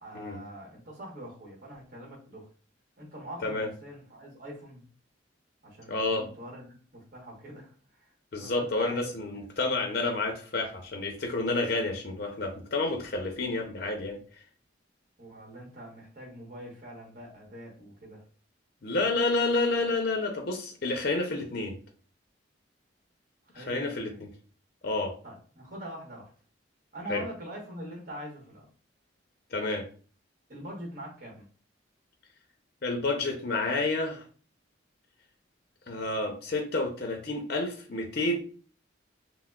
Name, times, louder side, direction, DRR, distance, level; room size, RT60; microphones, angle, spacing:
voice 1, 0.0-2.5 3.0-4.9 5.6-8.1 8.4-9.1 9.6-10.4 15.2-18.2 23.5-24.3 25.2-26.3 26.9-28.7 30.5-31.5, right 1 dB, 45° right, -1 dB, 1.1 m, -44 dB
voice 2, 5.9-6.3 8.3-14.4 18.8-21.8 23.5-24.3 24.8-25.1 27.1-27.2 29.5-29.8 32.8-34.2 35.9-38.5, left 2 dB, 50° left, 3 dB, 0.5 m, -29 dB
5.7 x 2.0 x 2.3 m, 0.41 s
head